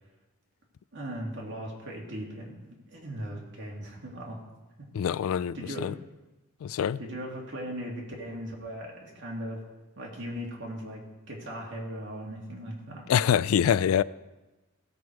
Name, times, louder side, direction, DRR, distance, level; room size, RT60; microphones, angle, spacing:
voice 1, 0.9-2.6 2.9-4.4 5.5-5.9 7.0-9.6 10.0-13.0, equal, 55° right, 2.4 m, -38 dB
voice 2, 4.9-5.9 6.6-7.0 13.1-14.0, left 8 dB, 80° left, 0.3 m, -25 dB
16.0 x 6.3 x 4.7 m
head